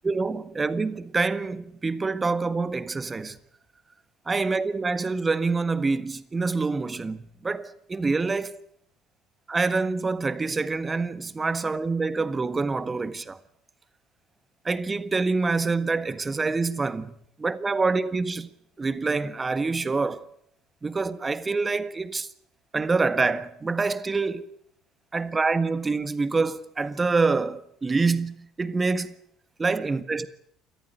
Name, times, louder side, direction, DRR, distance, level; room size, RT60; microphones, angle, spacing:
voice 1, 0.0-3.4 4.3-8.5 9.5-13.4 14.6-18.5 18.8-20.3 20.8-22.3 22.7-24.4 25.1-29.1 29.6-30.3, right 4 dB, 20° right, 1.5 m, -26 dB
28.0 x 14.0 x 9.2 m
figure-of-eight pair, 60°, 0 cm